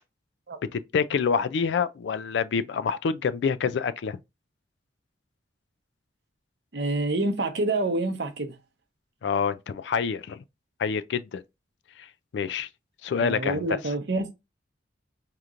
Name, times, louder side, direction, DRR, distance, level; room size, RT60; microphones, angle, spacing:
voice 1, 0.7-4.2 9.2-10.4 10.8-11.4 12.0-12.1 12.3-12.7 13.0-13.8, left 6 dB, 70° left, 0.3 m, -27 dB
voice 2, 6.7-8.5 13.2-14.3, right 2 dB, 65° right, 0.7 m, -27 dB
4.9 x 2.9 x 2.4 m
head